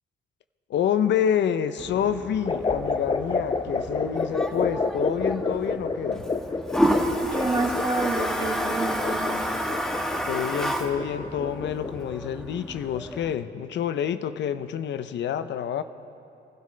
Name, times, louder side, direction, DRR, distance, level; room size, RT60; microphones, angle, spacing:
voice 1, 0.7-6.3 10.3-15.8, left 9 dB, 65° left, 12 dB, 0.6 m, -28 dB
Toilet flush, 1.8-13.3, equal, 5° left, 1.3 m, -30 dB
sound 1, 2.5-12.1, left 4 dB, 25° left, 0.7 m, -29 dB
voice 2, 7.2-9.4, right 3 dB, 25° right, 1 dB, 2.0 m, -29 dB
24.0 x 12.0 x 3.3 m, 2.6 s
cardioid pair, 90°, 20 cm